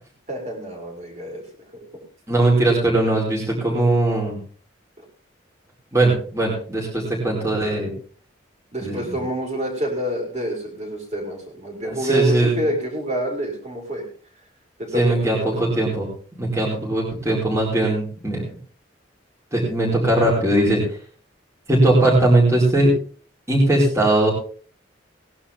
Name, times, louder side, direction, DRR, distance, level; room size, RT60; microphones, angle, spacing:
voice 1, 0.3-1.4 1.7-1.8 5.0-5.1 8.7-14.0 14.8-15.3, right 1 dB, 35° right, 0 dB, 5.5 m, -27 dB
voice 2, 2.3-4.4 5.9-7.9 8.8-9.2 11.8-12.6 14.9-16.1 16.4-18.4 19.5-21.0 21.7-22.9 23.5-24.3, right 1 dB, 15° right, -5 dB, 4.8 m, -19 dB
19.5 x 11.5 x 3.7 m, 0.43 s
head